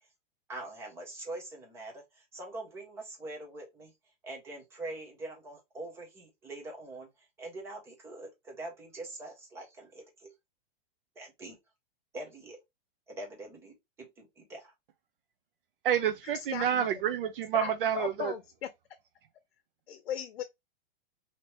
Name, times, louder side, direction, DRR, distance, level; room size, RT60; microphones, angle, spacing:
voice 1, 0.5-3.9 4.2-7.1 7.4-10.3 11.2-11.6 12.1-12.6 13.1-14.7, right 2 dB, 10° right, 0.7 m, -43 dB
voice 2, 15.8-18.3, right 9 dB, 65° right, 0.5 m, -29 dB
voice 3, 16.5-16.9 17.5-18.7 19.9-20.4, left 10 dB, 85° left, 0.6 m, -37 dB
3.1 x 2.8 x 3.0 m
supercardioid pair, 170°, 30 cm